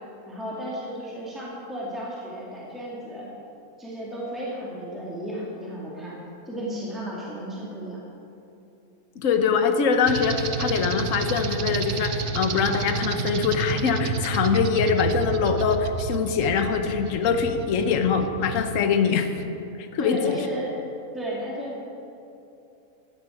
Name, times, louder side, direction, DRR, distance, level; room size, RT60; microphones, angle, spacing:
voice 1, 0.3-3.3 3.8-6.2 6.5-8.0 20.0-20.8 21.1-21.9, equal, ahead, -6 dB, 2.2 m, -34 dB
voice 2, 9.2-19.3 19.9-20.2, left 6 dB, 60° left, 6 dB, 1.3 m, -23 dB
sound 1, 10.1-18.8, right 6 dB, 60° right, 0.5 m, -30 dB
12.5 x 8.8 x 8.4 m, 2.8 s
omnidirectional pair, 1.6 m